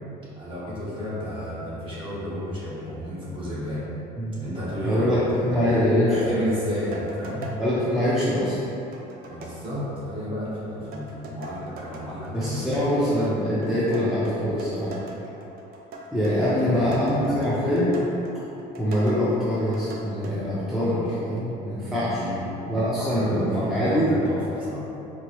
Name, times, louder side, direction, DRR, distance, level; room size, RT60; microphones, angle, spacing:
voice 1, 0.4-3.8 4.4-5.7 6.1-7.4 9.3-12.9 16.3-17.7 22.1-22.5 22.9-24.9, equal, 30° right, -9 dB, 1.2 m, -32 dB
voice 2, 4.8-6.2 7.5-8.6 12.3-15.0 16.1-17.9 18.8-22.3 22.6-24.1, equal, 5° right, -11 dB, 0.7 m, -24 dB
sound 1, 6.9-7.6 8.9-9.6 10.9-20.3, right 2 dB, 60° right, 0.5 m, -41 dB
4.4 x 2.1 x 3.0 m, 2.9 s
cardioid pair, 110°, 17 cm